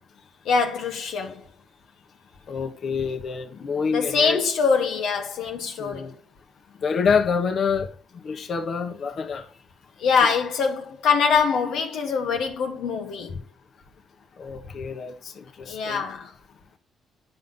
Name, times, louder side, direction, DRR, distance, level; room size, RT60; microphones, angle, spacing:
voice 1, 0.4-1.4 3.9-6.1 10.0-13.4 15.7-16.3, left 5 dB, 80° left, 1.2 m, -23 dB
voice 2, 2.5-4.4 5.8-6.1 6.8-7.9 8.2-9.4 14.4-16.1, left 5 dB, 55° left, 1.3 m, -27 dB
9.4 x 5.5 x 3.8 m
cardioid pair, 90°, 0 cm